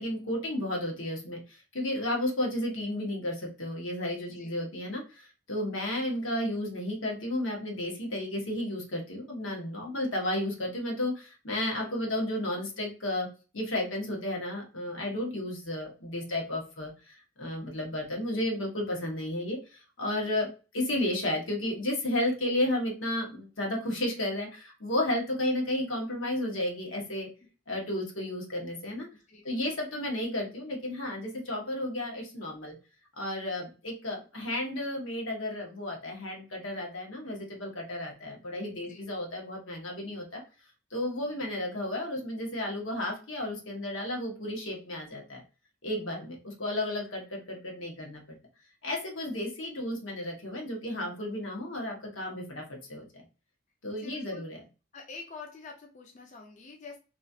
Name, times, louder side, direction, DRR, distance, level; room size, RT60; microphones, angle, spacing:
voice 1, 0.0-13.3 13.5-27.3 27.7-29.1 29.4-32.7 33.2-40.4 40.9-45.4 45.8-48.4 48.8-53.1 53.8-54.6, left 1 dB, 85° left, 0 dB, 1.1 m, -33 dB
voice 2, 29.1-29.8 38.9-39.0 53.9-54.5 54.9-57.0, left 4 dB, 40° left, 1 dB, 0.4 m, -47 dB
3.0 x 2.4 x 2.6 m, 0.33 s
head